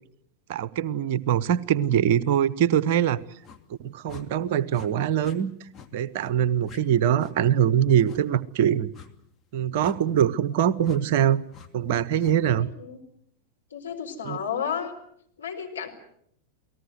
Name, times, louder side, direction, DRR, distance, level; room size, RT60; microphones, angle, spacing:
voice 1, 0.5-3.2 3.8-5.5 5.9-8.9 9.5-11.4 11.7-12.7 14.2-14.4, right 9 dB, 50° right, 16 dB, 0.9 m, -23 dB
sound 1, 3.4-3.6 4.1-4.3 4.7-4.9 5.2-5.4 5.7-5.9 6.2-6.3 6.6-6.8 7.2-7.4 8.0-8.2 8.9-9.1 9.8-10.0 10.8-11.0 11.5-11.7 12.2-12.4, left 8 dB, 20° left, 2.4 m, -46 dB
voice 2, 12.5-13.0 13.7-14.9 15.4-15.9, left 7 dB, 70° left, 1 dB, 4.4 m, -32 dB
29.0 x 18.5 x 8.0 m, 0.72 s
figure-of-eight pair, 90°, 0 cm